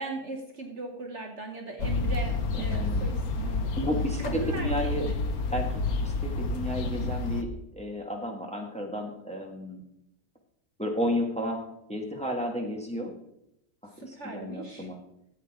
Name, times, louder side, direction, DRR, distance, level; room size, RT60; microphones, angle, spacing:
voice 1, 0.0-3.9 4.2-5.2 6.8-7.1 13.9-14.9, right 3 dB, 50° right, 3 dB, 1.3 m, -39 dB
sound 1, 1.8-7.4, left 3 dB, 70° left, 1.4 m, -29 dB
voice 2, 2.6-3.1 3.8-5.1 5.5-5.7 6.0-7.5 7.7-9.8 10.8-11.6 11.9-13.1 13.8-15.0, left 1 dB, 5° left, 1 dB, 1.6 m, -32 dB
13.5 x 8.7 x 3.6 m, 0.80 s
omnidirectional pair, 1.7 m